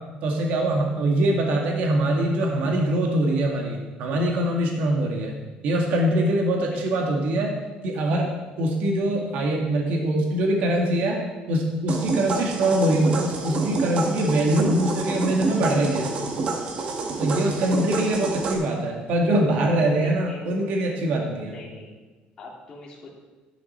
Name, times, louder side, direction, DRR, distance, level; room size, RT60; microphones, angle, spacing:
voice 1, 0.2-5.4 5.6-7.5 7.8-8.3 8.6-11.2 11.5-16.1 17.2-21.6, right 1 dB, 60° right, 0 dB, 1.9 m, -23 dB
voice 2, 6.7-7.0 17.9-18.3 19.9-20.4 21.5-21.9 22.4-23.1, left 2 dB, 30° left, -5 dB, 3.1 m, -43 dB
sound 1, 11.9-18.5, right 3 dB, 40° right, 1.4 m, -28 dB
11.5 x 11.0 x 4.3 m, 1.2 s
cardioid pair, 170°, 3 cm